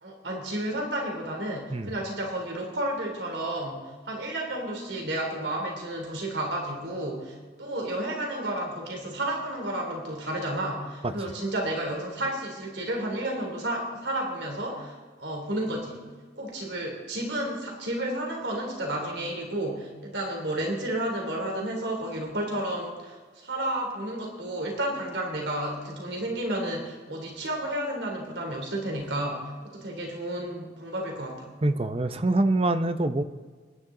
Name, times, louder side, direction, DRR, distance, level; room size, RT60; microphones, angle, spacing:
voice 1, 0.0-16.1 16.4-31.5, right 1 dB, 80° right, 1 dB, 3.3 m, -32 dB
voice 2, 31.6-33.2, right 2 dB, 35° right, 10 dB, 0.7 m, -25 dB
24.0 x 11.0 x 3.8 m, 1.4 s
head